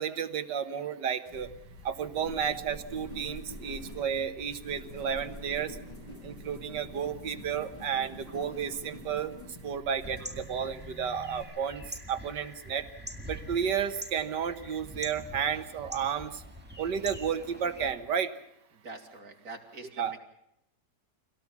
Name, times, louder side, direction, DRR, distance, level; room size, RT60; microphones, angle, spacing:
voice 1, 0.0-1.5 1.8-5.8 6.2-9.3 9.6-11.8 12.1-12.9 13.3-16.4 16.8-18.3 20.0-20.2, right 7 dB, 75° right, 9 dB, 2.0 m, -32 dB
sound 1, 1.3-11.4, equal, 20° left, 8.1 m, -46 dB
sound 2, 10.0-17.9, equal, 5° right, 1.9 m, -44 dB
voice 2, 18.8-20.2, right 3 dB, 55° right, 2 dB, 3.5 m, -45 dB
26.0 x 17.5 x 7.3 m, 0.80 s
omnidirectional pair, 1.9 m